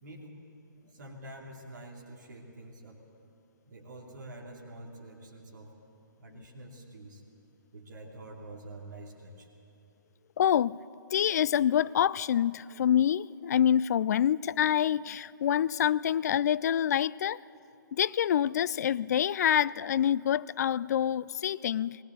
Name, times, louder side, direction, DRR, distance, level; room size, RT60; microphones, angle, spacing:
voice 1, 0.0-0.4 0.9-3.0 3.7-5.7 6.2-7.2 7.7-9.5, right 1 dB, 65° right, -1 dB, 2.6 m, -47 dB
voice 2, 10.4-10.8 11.1-17.4 17.9-22.0, left 9 dB, 50° left, 21 dB, 0.4 m, -26 dB
19.5 x 17.5 x 8.1 m, 2.8 s
figure-of-eight pair, 125°, 11 cm